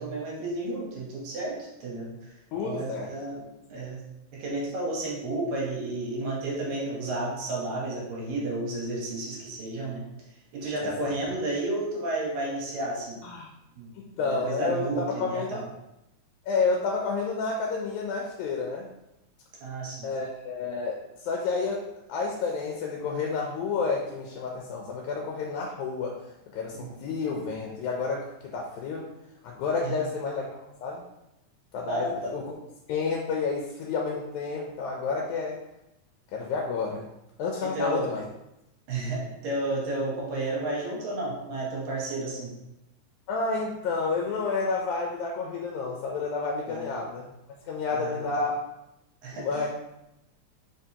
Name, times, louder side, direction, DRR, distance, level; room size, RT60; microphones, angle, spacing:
voice 1, 0.0-2.3 2.6-3.4 3.7-4.0 4.3-10.0 10.5-13.2 13.8-13.9 14.4-15.7 19.6-20.1 26.7-27.1 29.8-30.0 31.9-32.3 37.7-38.1 38.9-42.5 46.7-46.9 47.9-48.4 49.2-49.7, right 2 dB, 75° right, -4 dB, 2.3 m, -32 dB
voice 2, 2.5-3.1 10.8-11.2 13.2-13.5 14.0-15.6 16.5-18.9 20.0-26.2 26.5-29.1 29.4-31.0 31.7-32.4 32.9-35.6 36.3-37.1 37.4-38.2 43.3-47.3 47.7-48.6 49.3-49.7, left 4 dB, 80° left, -1 dB, 1.9 m, -30 dB
4.7 x 3.3 x 2.8 m, 0.88 s
omnidirectional pair, 3.4 m